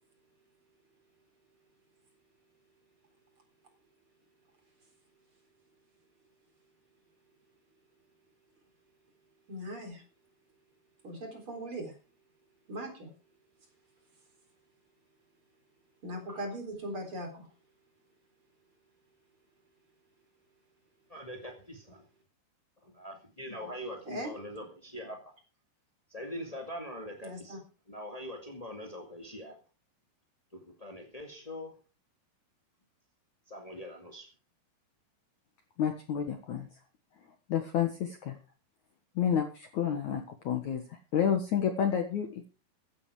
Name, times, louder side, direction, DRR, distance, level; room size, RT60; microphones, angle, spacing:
voice 1, 9.5-10.0 11.0-12.0 12.7-13.1 16.0-17.5 24.1-24.3 27.2-27.6, right 1 dB, 30° right, 5 dB, 4.4 m, -39 dB
voice 2, 21.1-22.0 22.8-25.3 26.1-27.6 27.9-29.5 30.5-31.7 33.5-34.3, equal, 20° left, 2 dB, 1.0 m, -43 dB
voice 3, 35.8-36.7 37.2-38.4 39.2-42.4, left 8 dB, 60° left, 5 dB, 2.2 m, -30 dB
15.5 x 11.5 x 4.8 m, 0.35 s
omnidirectional pair, 4.9 m